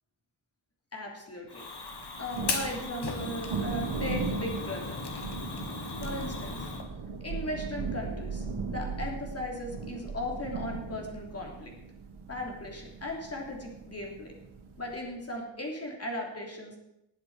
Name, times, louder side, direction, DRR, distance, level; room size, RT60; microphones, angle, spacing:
voice 1, 0.9-1.6 2.2-5.0 6.0-6.7 7.2-11.7 12.3-14.3 14.8-16.8, left 1 dB, 30° left, 0 dB, 3.3 m, -37 dB
Fire, 1.5-6.8, left 3 dB, 55° left, 2.0 m, -37 dB
Thunder, 1.9-15.1, right 4 dB, 85° right, 1.7 m, -38 dB
19.5 x 7.4 x 5.0 m, 0.84 s
wide cardioid pair, 110°, 48 cm